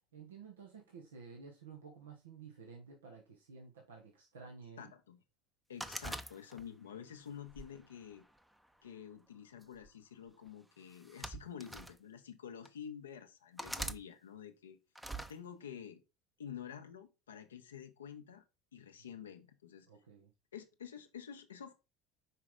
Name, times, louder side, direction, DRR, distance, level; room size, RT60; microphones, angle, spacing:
voice 1, 0.1-4.9 6.9-7.0 19.9-20.3, right 5 dB, 85° right, 1.3 m, -53 dB
voice 2, 4.8-5.2 5.7-8.2 8.8-14.8 15.3-16.0 16.4-18.4 18.7-19.9 20.5-21.7, left 8 dB, 85° left, 1.0 m, -49 dB
sound 1, 5.8-6.9 7.5-8.7 9.6-9.9 10.9-12.0 12.7-12.8 13.6-14.0 15.0-15.3, right 1 dB, 5° right, 0.7 m, -43 dB
5.6 x 4.9 x 3.6 m
hypercardioid pair, 75°, 0 cm